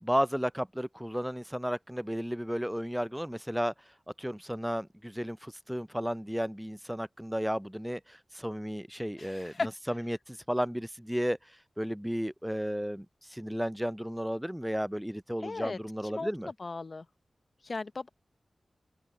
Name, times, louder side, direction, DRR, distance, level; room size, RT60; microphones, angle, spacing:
voice 1, 0.0-3.7 4.2-9.5 9.9-11.4 11.8-16.5, equal, 5° right, 0.5 m, -33 dB
voice 2, 9.2-9.7 15.4-17.1 17.6-18.1, left 3 dB, 55° left, 1.0 m, -37 dB
cardioid pair, 60°, 0 cm